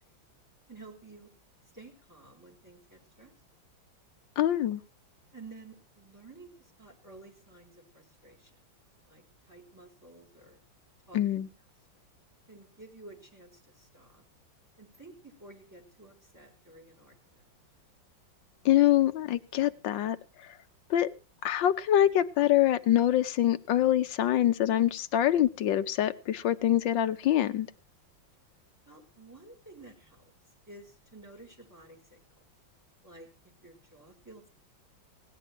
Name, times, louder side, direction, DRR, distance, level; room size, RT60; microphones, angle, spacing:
voice 1, 0.7-1.3 1.7-3.3 5.3-8.6 9.1-10.6 11.1-11.4 12.5-14.2 14.8-17.4 28.9-30.3 30.7-32.4 33.0-33.3 33.6-34.5, right 2 dB, 10° right, 0 dB, 4.7 m, -52 dB
voice 2, 4.4-4.8 11.1-11.5 18.6-20.2 20.9-21.1 21.4-27.7, left 12 dB, 70° left, 10 dB, 1.5 m, -25 dB
17.5 x 10.5 x 4.6 m, 0.34 s
omnidirectional pair, 2.1 m